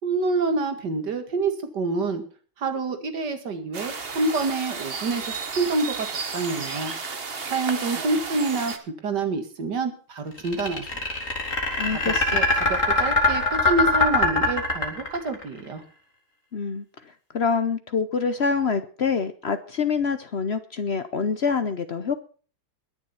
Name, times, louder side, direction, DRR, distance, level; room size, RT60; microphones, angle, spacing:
voice 1, 0.0-2.2 2.6-6.1 6.3-6.9 7.5-8.7 9.0-11.1 11.9-15.8, right 3 dB, 50° right, 7 dB, 2.5 m, -27 dB
sound 1, 3.7-8.8, right 5 dB, 35° right, 1.2 m, -33 dB
sound 2, 10.4-15.4, left 3 dB, 35° left, 3.7 m, -22 dB
voice 2, 11.8-12.4 16.5-22.1, left 5 dB, 70° left, 10 dB, 0.6 m, -26 dB
22.0 x 7.4 x 5.7 m, 0.40 s
omnidirectional pair, 2.3 m